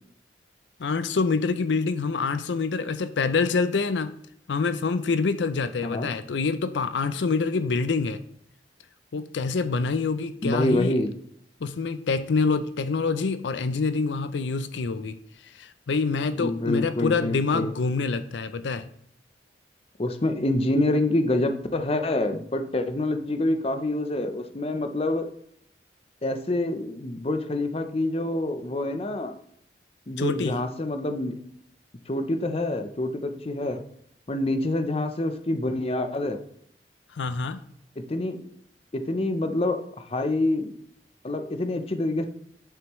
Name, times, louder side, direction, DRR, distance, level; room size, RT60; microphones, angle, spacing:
voice 1, 0.8-4.1 4.5-8.2 9.1-10.9 11.6-15.1 15.4-18.9 30.2-30.5 37.1-37.6, left 4 dB, 85° left, 13 dB, 0.5 m, -26 dB
voice 2, 10.4-11.1 16.4-17.7 20.0-25.3 26.2-29.4 30.1-31.4 32.1-33.8 34.3-36.4 38.1-38.4 38.9-40.7 41.2-42.3, left 1 dB, 35° left, 8 dB, 0.6 m, -26 dB
9.1 x 6.9 x 3.1 m, 0.68 s
head